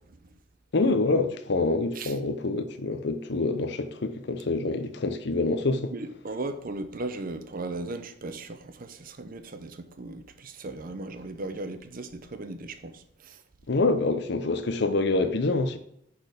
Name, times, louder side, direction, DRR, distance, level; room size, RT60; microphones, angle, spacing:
voice 1, 0.7-5.9 13.7-15.8, left 3 dB, 60° left, 0.7 m, -26 dB
voice 2, 5.9-12.9 13.3-13.4, right 2 dB, 50° right, 0.7 m, -37 dB
6.3 x 4.3 x 5.0 m
head